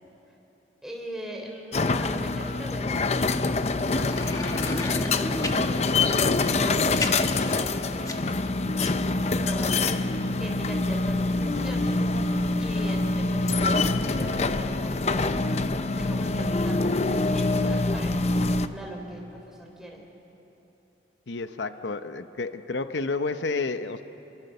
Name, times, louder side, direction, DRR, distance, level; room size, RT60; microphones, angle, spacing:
voice 1, 0.8-8.1 8.6-9.2 9.4-12.1 12.6-15.4 15.9-20.0, equal, 5° right, 0 dB, 3.7 m, -41 dB
sound 1, 1.7-18.7, left 3 dB, 40° left, 0.7 m, -25 dB
sound 2, 4.1-5.6 6.4-8.5 8.8-8.9, left 2 dB, 20° left, 1.4 m, -33 dB
voice 2, 21.3-24.0, left 3 dB, 90° left, 10 dB, 0.8 m, -30 dB
28.5 x 23.0 x 6.8 m, 3.0 s
head